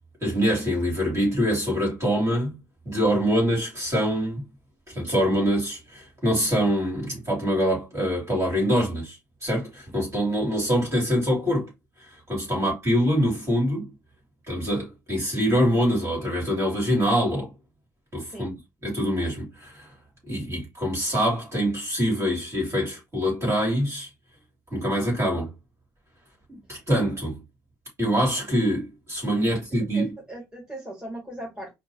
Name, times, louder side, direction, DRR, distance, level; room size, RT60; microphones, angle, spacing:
voice 1, 0.2-2.6 2.8-4.4 4.9-11.7 12.0-13.9 14.5-17.5 18.1-18.5 18.8-19.9 20.3-24.1 24.7-25.5 26.5-27.4 28.0-30.1, equal, 30° right, 2.9 m, -24 dB
voice 2, 29.9-31.7, right 1 dB, 10° right, 2.4 m, -38 dB
4.3 x 2.7 x 3.1 m
figure-of-eight pair, 50°, 9 cm